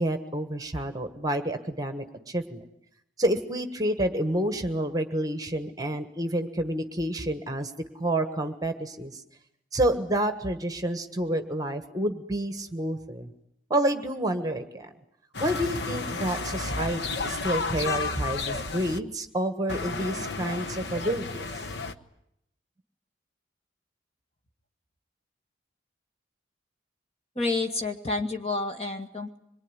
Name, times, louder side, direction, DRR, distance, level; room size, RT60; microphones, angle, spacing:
voice 1, 0.0-2.6 3.2-9.2 9.7-13.3 13.7-14.9 15.4-21.5, right 1 dB, 20° right, 8 dB, 1.4 m, -29 dB
sound 1, 15.3-19.0 19.7-21.9, left 4 dB, 55° left, 1.1 m, -32 dB
voice 2, 27.4-29.4, left 3 dB, 30° left, 5 dB, 2.1 m, -29 dB
25.0 x 22.5 x 9.9 m, 0.79 s
head